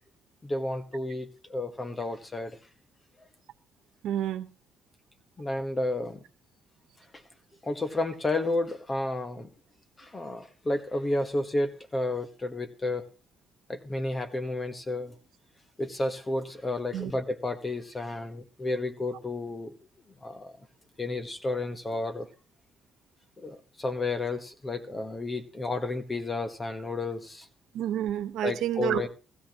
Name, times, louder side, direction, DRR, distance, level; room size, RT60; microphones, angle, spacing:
voice 1, 0.4-2.6 5.4-6.2 7.6-9.5 10.0-13.0 13.7-15.1 15.8-19.7 20.2-20.5 21.0-22.3 23.4-27.5 28.4-29.1, left 2 dB, 20° left, 8 dB, 1.4 m, -31 dB
voice 2, 4.0-4.5 16.9-17.1 27.7-29.1, right 11 dB, 80° right, 10 dB, 1.2 m, -29 dB
15.5 x 15.5 x 3.1 m, 0.33 s
cardioid pair, 130°, 0 cm